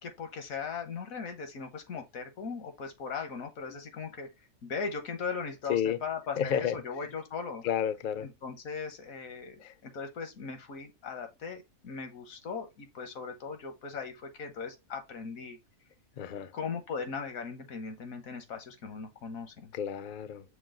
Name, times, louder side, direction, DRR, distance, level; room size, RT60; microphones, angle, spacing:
voice 1, 0.0-4.3 4.6-7.7 8.2-15.6 16.5-19.7, left 5 dB, 80° left, 1.5 m, -38 dB
voice 2, 6.4-6.8 7.6-8.3 9.6-9.7 16.2-16.5 19.7-20.4, left 9 dB, 65° left, 0.5 m, -31 dB
6.0 x 2.3 x 3.7 m
omnidirectional pair, 1.4 m